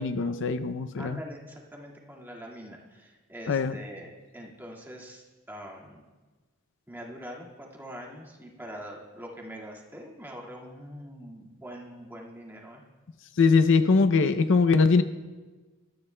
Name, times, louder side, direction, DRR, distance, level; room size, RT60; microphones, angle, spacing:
voice 1, 0.0-1.2 3.5-3.8 13.4-15.0, left 4 dB, 60° left, 11 dB, 0.5 m, -22 dB
voice 2, 1.0-6.0 6.9-12.8, equal, 10° right, -2 dB, 1.9 m, -43 dB
21.5 x 13.5 x 2.2 m, 1.3 s
head